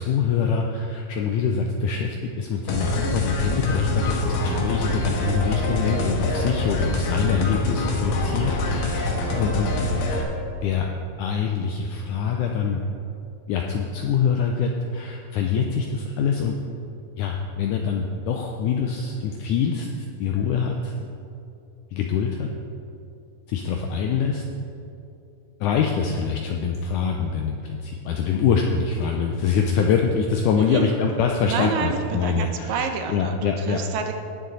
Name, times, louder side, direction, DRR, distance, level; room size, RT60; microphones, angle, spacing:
voice 1, 0.0-9.1 9.3-9.7 10.6-10.9 11.2-12.8 13.5-16.5 17.2-19.9 20.2-21.1 21.9-22.5 23.5-24.4 25.6-32.7 33.1-33.8, left 6 dB, 90° left, 2 dB, 1.8 m, -24 dB
sound 1, 2.7-10.2, left 2 dB, 70° left, 2.8 m, -25 dB
voice 2, 30.5-30.9 31.5-34.1, right 6 dB, 75° right, 5 dB, 2.2 m, -29 dB
18.5 x 6.5 x 4.0 m, 2.7 s
omnidirectional pair, 4.2 m